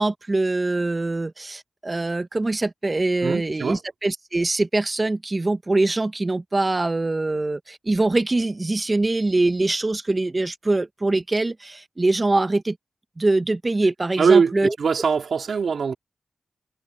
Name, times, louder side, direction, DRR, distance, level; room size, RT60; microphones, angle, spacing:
voice 1, 0.0-12.8 13.2-14.7, right 2 dB, 35° right, 1.7 m, -23 dB
voice 2, 3.2-3.8 14.2-15.9, right 5 dB, 80° right, 4.1 m, -21 dB
cardioid pair, 45°, 0 cm